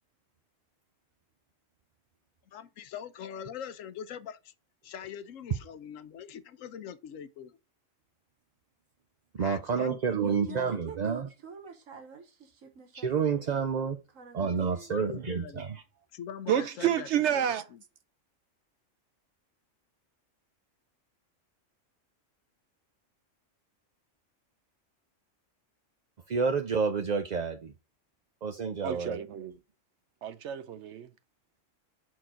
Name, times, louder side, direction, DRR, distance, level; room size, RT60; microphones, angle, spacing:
voice 1, 2.5-4.5 4.8-7.6 9.4-10.9 14.9-15.8 16.1-17.8, left 9 dB, 85° left, 1.1 m, -43 dB
voice 2, 9.3-11.3 13.0-14.0 14.3-15.7 26.3-27.7 28.4-29.2, right 6 dB, 50° right, 0.5 m, -29 dB
voice 3, 10.1-13.7 14.1-15.3, right 6 dB, 90° right, 1.5 m, -48 dB
voice 4, 16.5-17.7 28.8-29.5 30.2-31.1, right 10 dB, 70° right, 0.8 m, -29 dB
5.9 x 4.7 x 3.7 m
omnidirectional pair, 1.3 m